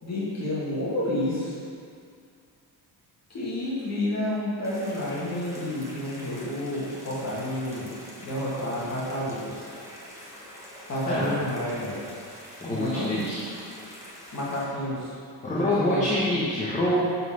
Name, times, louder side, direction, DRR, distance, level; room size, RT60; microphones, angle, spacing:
voice 1, 0.0-1.6 3.3-7.9 8.2-9.7 10.9-12.0 12.6-13.2 14.3-15.1 15.7-16.1, left 1 dB, 40° left, -7 dB, 2.1 m, -30 dB
sound 1, 4.6-14.6, equal, 5° right, 1.5 m, -45 dB
voice 2, 12.6-13.4 15.4-17.0, left 1 dB, 20° left, -7 dB, 1.2 m, -26 dB
10.5 x 4.3 x 6.4 m, 2.3 s
cardioid pair, 175°, 40 cm